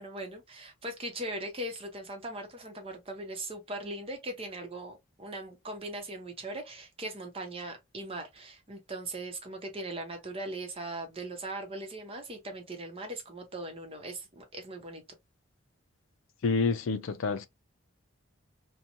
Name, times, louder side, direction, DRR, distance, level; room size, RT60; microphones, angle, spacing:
voice 1, 0.0-15.0, right 1 dB, 30° right, 0.8 m, -39 dB
voice 2, 16.4-17.5, left 4 dB, 70° left, 0.4 m, -28 dB
2.9 x 2.2 x 2.5 m
head